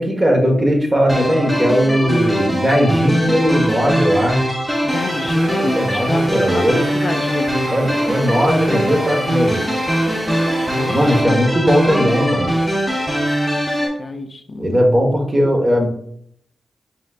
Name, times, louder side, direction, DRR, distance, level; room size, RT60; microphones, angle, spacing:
voice 1, 0.0-4.4 5.8-6.8 7.7-9.6 10.9-12.5 14.6-15.9, equal, 25° right, 1 dB, 1.3 m, -17 dB
sound 1, 1.1-13.9, equal, 5° right, 1.2 m, -21 dB
voice 2, 4.8-6.6 6.9-8.0 10.7-11.4 14.0-14.8, left 3 dB, 50° left, 7 dB, 0.4 m, -28 dB
sound 2, 4.9-11.2, right 2 dB, 70° right, 0.7 m, -32 dB
5.2 x 3.6 x 2.4 m, 0.68 s
cardioid pair, 55°, 0 cm